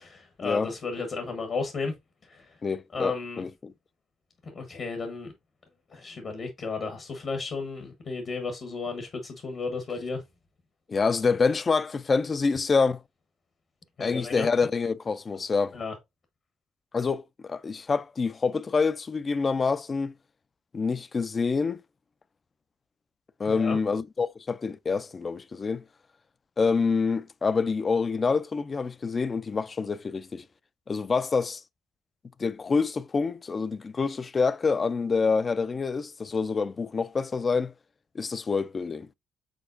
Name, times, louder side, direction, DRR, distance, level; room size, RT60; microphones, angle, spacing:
voice 1, 0.0-1.9 2.3-2.5 2.9-3.4 4.5-5.3 5.9-10.2 14.0-14.5 15.7-15.9 23.5-23.8, left 4 dB, 50° left, 1.1 m, -33 dB
voice 2, 2.6-3.7 10.9-13.0 14.0-15.8 16.9-20.1 20.7-21.8 23.4-25.8 26.6-30.4 30.9-31.6 32.4-37.7 38.2-39.1, left 4 dB, 35° left, 0.3 m, -27 dB
5.0 x 3.7 x 2.5 m
cardioid pair, 90°, 0 cm